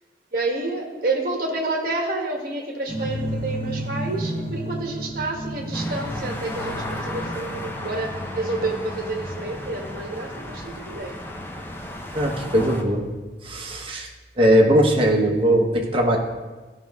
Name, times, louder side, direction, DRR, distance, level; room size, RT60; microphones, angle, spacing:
voice 1, 0.3-11.2, right 2 dB, 55° right, 1 dB, 1.2 m, -29 dB
sound 1, 2.9-8.3, equal, 90° left, 3.0 m, -31 dB
sound 2, 5.7-12.8, left 1 dB, 10° left, 0.6 m, -34 dB
voice 2, 12.1-13.1 13.4-14.1 14.4-16.2, equal, 30° right, 0 dB, 1.0 m, -19 dB
13.0 x 5.3 x 3.5 m, 1.3 s
head